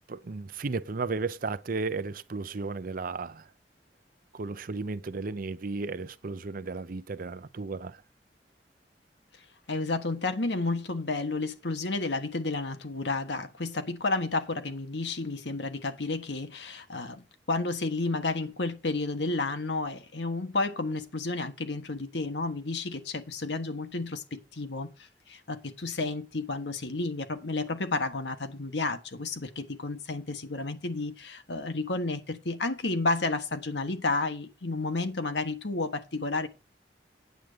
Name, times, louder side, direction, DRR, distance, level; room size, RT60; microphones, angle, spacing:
voice 1, 0.1-3.5 4.3-8.0, right 3 dB, 55° right, 0.6 m, -34 dB
voice 2, 9.7-36.5, left 3 dB, 80° left, 1.4 m, -31 dB
9.1 x 7.7 x 5.1 m
head